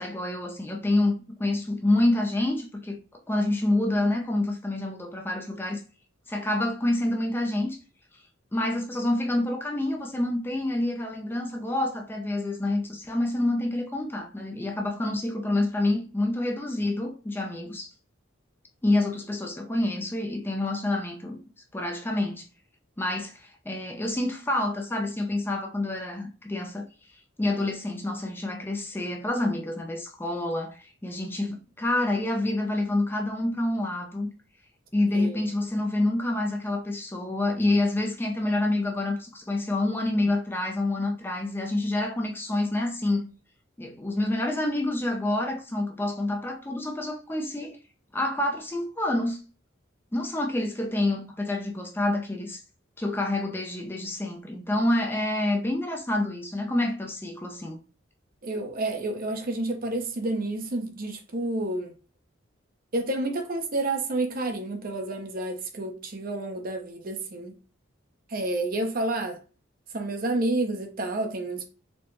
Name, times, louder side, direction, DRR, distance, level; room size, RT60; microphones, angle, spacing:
voice 1, 0.0-3.0 3.3-5.8 6.3-7.8 8.5-17.9 18.8-21.4 21.7-22.5 23.0-26.9 27.4-34.3 34.9-43.3 43.8-47.8 48.1-49.4 50.1-52.6 53.0-57.8, left 1 dB, 10° left, 0.4 m, -27 dB
voice 2, 35.1-35.4 58.4-61.9 62.9-67.6 68.3-69.4 69.9-71.6, right 2 dB, 45° right, 0.7 m, -29 dB
4.2 x 2.1 x 3.2 m
head